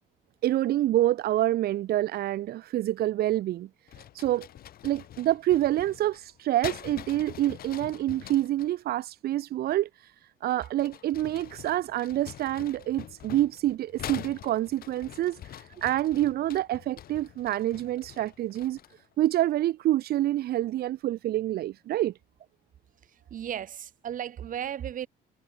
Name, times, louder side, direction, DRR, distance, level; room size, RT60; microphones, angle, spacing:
voice 1, 0.4-3.7 4.1-4.5 4.8-10.1 10.4-18.8 19.2-22.1, right 14 dB, 70° right, 1.6 m, -27 dB
sound 1, 3.9-8.7 10.5-19.1, left 12 dB, 60° left, 3.8 m, -45 dB
voice 2, 23.1-25.1, right 10 dB, 55° right, 3.2 m, -35 dB
cardioid pair, 110°, 17 cm